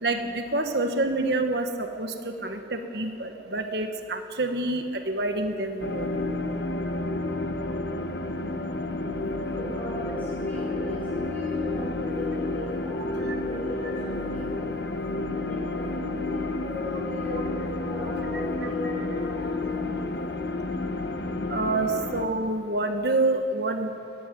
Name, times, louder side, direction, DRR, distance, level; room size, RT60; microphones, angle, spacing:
voice 1, 0.0-6.1 13.3-13.4 18.3-18.7 21.5-23.9, right 2 dB, 60° right, 5 dB, 1.4 m, -27 dB
sound 1, 5.8-22.3, left 2 dB, 65° left, 1.2 m, -30 dB
voice 2, 9.5-14.8 15.3-19.9, left 1 dB, 10° left, -7 dB, 4.2 m, -38 dB
22.0 x 15.5 x 9.3 m, 2.7 s
head